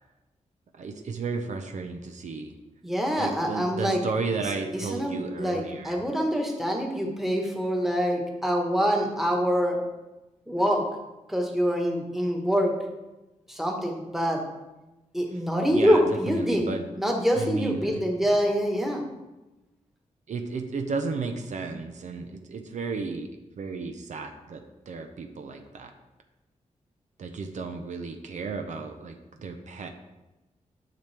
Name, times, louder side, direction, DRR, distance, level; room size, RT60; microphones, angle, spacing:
voice 1, 0.8-2.5 3.2-6.0 15.7-16.8 17.3-18.0 20.3-23.3 23.6-24.6 24.9-25.9 27.2-29.9, right 4 dB, 70° right, 5 dB, 0.8 m, -33 dB
voice 2, 2.8-4.0 4.4-5.1 5.4-9.8 10.5-10.8 11.3-12.7 13.5-14.4 15.1-19.0, equal, 5° right, 0 dB, 1.4 m, -25 dB
10.5 x 6.0 x 3.4 m, 1.0 s
wide cardioid pair, 115°, 13 cm